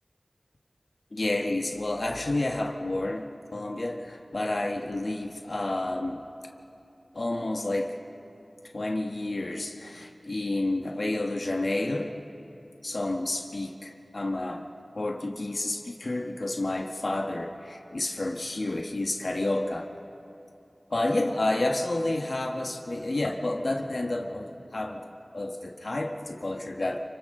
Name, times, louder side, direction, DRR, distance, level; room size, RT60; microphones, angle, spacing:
voice 1, 1.1-3.3 3.5-6.2 7.1-7.9 8.7-12.1 12.8-14.6 14.9-19.9 20.9-25.0 25.3-27.0, left 2 dB, 70° left, 2 dB, 1.3 m, -30 dB
29.0 x 25.5 x 3.8 m, 2.8 s
wide cardioid pair, 50°, 0 cm